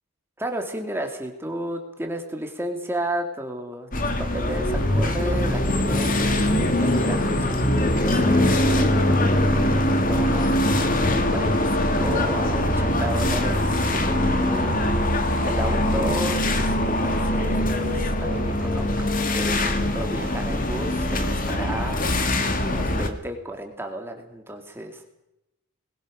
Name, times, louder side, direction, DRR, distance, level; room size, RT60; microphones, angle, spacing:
voice 1, 0.4-9.5 9.7-11.0 11.3-22.3 22.6-25.1, right 1 dB, 10° right, 4 dB, 2.5 m, -33 dB
sound 1, 3.9-23.1, left 1 dB, 40° left, 2.3 m, -22 dB
22.5 x 21.5 x 6.4 m, 0.87 s
head